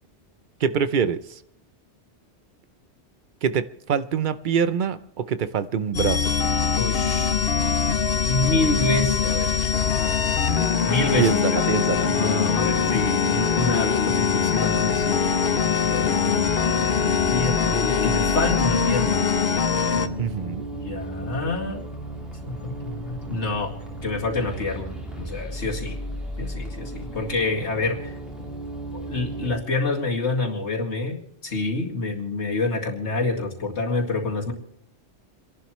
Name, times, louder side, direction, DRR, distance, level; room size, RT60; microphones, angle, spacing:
voice 1, 0.6-1.4 3.4-6.3 11.2-12.1 20.2-20.7, right 7 dB, 50° right, 13 dB, 0.8 m, -25 dB
sound 1, 5.9-20.1, left 6 dB, 65° left, 1.0 m, -22 dB
voice 2, 6.7-7.3 8.2-9.6 10.8-11.6 12.1-16.5 17.0-19.1 19.9-21.9 22.4-23.7 24.0-24.9 25.2-26.0 26.4-28.2 28.9-34.5, left 2 dB, 80° left, 0 dB, 2.5 m, -27 dB
sound 2, 11.0-29.5, right 1 dB, ahead, 3.1 m, -35 dB
29.5 x 11.5 x 3.1 m, 0.75 s
omnidirectional pair, 1.1 m